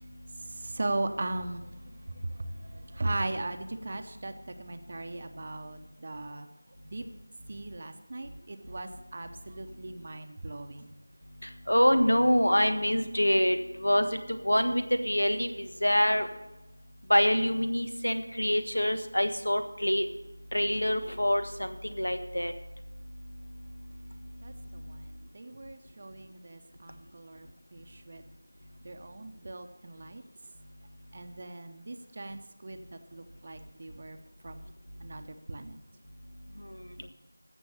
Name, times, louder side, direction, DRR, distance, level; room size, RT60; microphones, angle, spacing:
voice 1, 0.5-6.5 6.8-7.0 7.5-10.9 24.4-28.3 28.8-30.2 31.1-34.2 34.4-34.6 35.0-35.8, right 2 dB, 35° right, 7 dB, 0.8 m, -38 dB
voice 2, 11.7-14.1 14.4-15.5 15.8-16.3 17.1-20.0 20.5-22.5, equal, 85° left, 8 dB, 1.4 m, -25 dB
15.5 x 6.2 x 7.1 m, 0.98 s
figure-of-eight pair, 170°, 0 cm